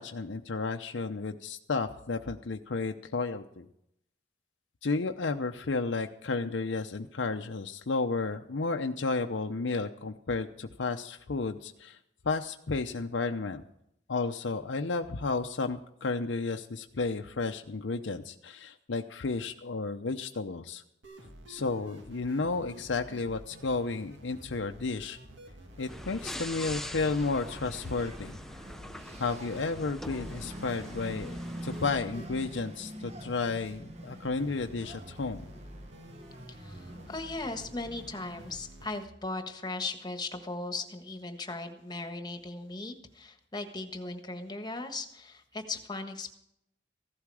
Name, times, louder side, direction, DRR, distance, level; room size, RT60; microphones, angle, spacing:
voice 1, 0.0-3.7 4.8-12.0 12.2-13.6 14.1-20.8 21.5-25.2 25.8-28.3 29.2-35.5, left 3 dB, 80° left, 5 dB, 0.7 m, -32 dB
sound 1, 21.0-39.0, equal, 80° right, 2.1 m, -50 dB
Engine, 25.7-38.7, right 1 dB, 35° right, 1.2 m, -46 dB
sound 2, 25.9-32.0, left 1 dB, ahead, 0.6 m, -43 dB
voice 2, 36.5-46.3, left 3 dB, 25° left, 6 dB, 1.5 m, -38 dB
15.5 x 12.0 x 4.8 m, 0.76 s
head